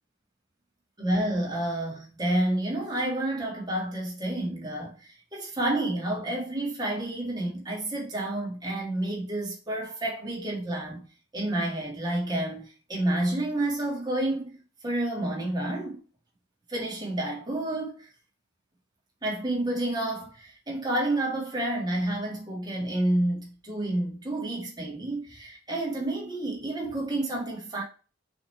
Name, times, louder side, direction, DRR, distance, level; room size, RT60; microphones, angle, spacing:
voice 1, 1.0-4.9 5.3-11.0 11.3-14.5 14.8-16.0 16.7-18.1 19.2-27.8, right 1 dB, 20° right, 1.7 m, -29 dB
6.3 x 3.6 x 4.3 m
head